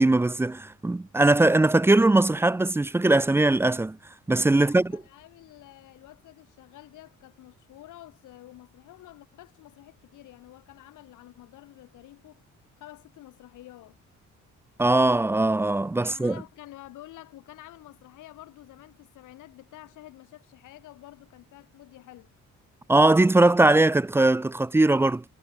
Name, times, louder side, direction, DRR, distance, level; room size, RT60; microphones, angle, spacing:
voice 1, 0.0-4.0 4.3-4.9 14.8-16.4 22.9-25.2, right 2 dB, 10° right, 0.4 m, -20 dB
voice 2, 4.5-12.4 12.8-14.0 16.0-22.3, left 15 dB, 90° left, 4.2 m, -49 dB
cardioid pair, 90°, 30 cm